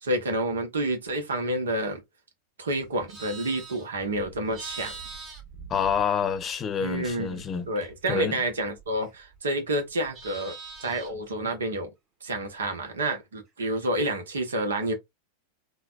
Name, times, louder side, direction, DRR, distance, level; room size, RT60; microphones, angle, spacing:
voice 1, 0.0-2.0 2.6-5.0 6.8-7.4 7.7-11.9 12.2-14.9, right 1 dB, 70° right, 1.1 m, -29 dB
Livestock farm animals working animals, 2.8-6.5 6.8-9.4 9.7-11.3, right 4 dB, 30° right, 1.6 m, -44 dB
voice 2, 5.7-7.7 8.1-8.4, left 7 dB, 25° left, 0.6 m, -27 dB
3.9 x 2.4 x 2.4 m
figure-of-eight pair, 90°, 0 cm